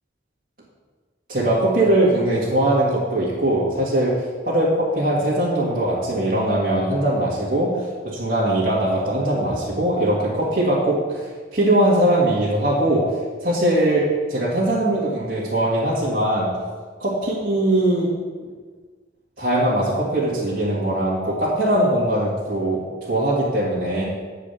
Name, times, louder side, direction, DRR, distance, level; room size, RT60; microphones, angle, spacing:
voice 1, 1.3-13.0 13.4-14.0 14.3-16.5 17.0-18.1 19.4-24.0, right 1 dB, 50° right, -8 dB, 1.8 m, -21 dB
8.2 x 4.9 x 6.9 m, 1.5 s
head